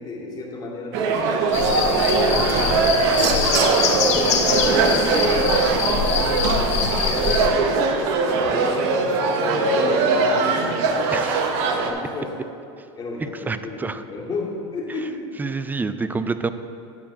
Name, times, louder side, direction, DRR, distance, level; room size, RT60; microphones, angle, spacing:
voice 1, 0.0-3.6 4.0-12.3 13.0-15.4, left 2 dB, 25° left, -4 dB, 2.3 m, -33 dB
sound 1, 0.9-11.9, right 4 dB, 70° right, 0.9 m, -21 dB
sound 2, 1.5-7.5, left 7 dB, 50° left, 0.9 m, -24 dB
voice 2, 11.1-11.4 13.2-14.0 15.4-16.5, right 4 dB, 10° right, 11 dB, 0.4 m, -27 dB
9.8 x 4.5 x 6.4 m, 2.6 s
supercardioid pair, 105°, 15 cm